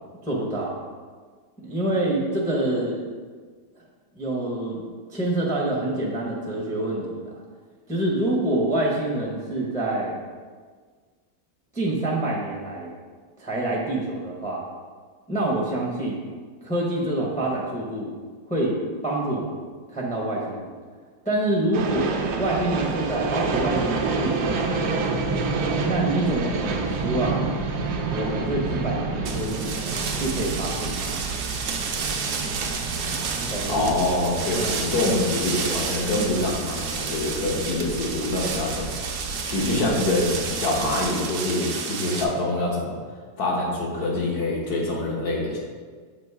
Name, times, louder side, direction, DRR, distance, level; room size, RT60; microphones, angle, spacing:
voice 1, 0.2-0.8 1.6-3.0 4.1-7.4 7.9-10.2 11.7-12.9 13.4-14.6 15.3-16.2 16.6-18.1 18.5-18.8 19.0-19.6 19.9-20.7 21.2-24.9 25.8-27.4 28.1-29.7 30.2-31.3 33.4-33.9 34.5-34.8, right 1 dB, 5° left, -3 dB, 0.6 m, -26 dB
sound 1, 21.7-41.1, right 3 dB, 80° right, 1.2 m, -29 dB
sound 2, 29.2-42.2, right 5 dB, 65° right, 0.9 m, -31 dB
voice 2, 33.7-39.0 39.4-43.0 43.4-45.6, left 2 dB, 70° left, -3 dB, 1.7 m, -25 dB
6.9 x 3.1 x 4.7 m, 1.5 s
omnidirectional pair, 1.7 m